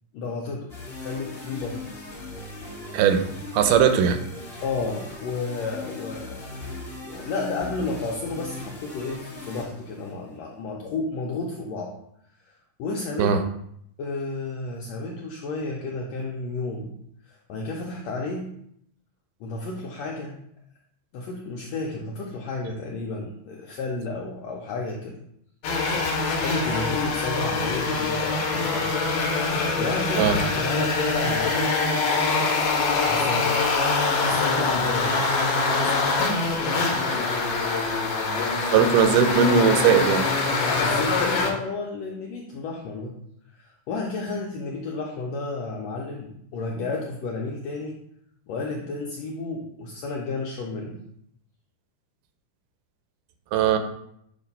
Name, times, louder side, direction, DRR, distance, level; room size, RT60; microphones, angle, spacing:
voice 1, 0.1-0.7 1.0-1.8 4.6-11.9 12.4-13.4 14.0-16.9 17.3-18.5 19.4-20.4 21.1-25.2 26.4-28.9 29.4-31.8 33.1-33.6 34.2-35.2 40.8-43.2 43.5-48.0 48.5-51.0, left 3 dB, 85° left, -1 dB, 1.5 m, -32 dB
sound 1, 0.7-10.4, left 2 dB, 35° left, 0.9 m, -39 dB
voice 2, 2.9-3.2 3.5-4.2 13.2-13.4 30.2-30.4 35.9-36.0 38.7-40.3 53.5-53.8, right 7 dB, 85° right, 9 dB, 2.2 m, -19 dB
sound 2, 25.6-41.5, left 3 dB, 70° left, 1.9 m, -24 dB
7.3 x 2.6 x 5.3 m, 0.73 s
omnidirectional pair, 3.8 m